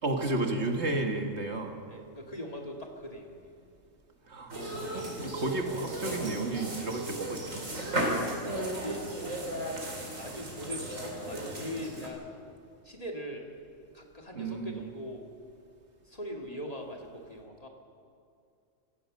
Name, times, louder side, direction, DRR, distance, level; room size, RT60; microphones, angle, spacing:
voice 1, 0.0-1.7 4.3-4.5 4.9-7.7 14.4-14.8, right 2 dB, 55° right, 3 dB, 2.0 m, -32 dB
voice 2, 1.9-3.5 8.4-9.0 10.2-12.3 12.8-13.5 13.9-15.2 16.0-17.7, left 1 dB, 30° left, 1 dB, 2.2 m, -41 dB
sound 1, 4.5-12.1, right 1 dB, 75° right, 3.8 m, -35 dB
25.5 x 15.5 x 6.6 m, 2.5 s
omnidirectional pair, 1.4 m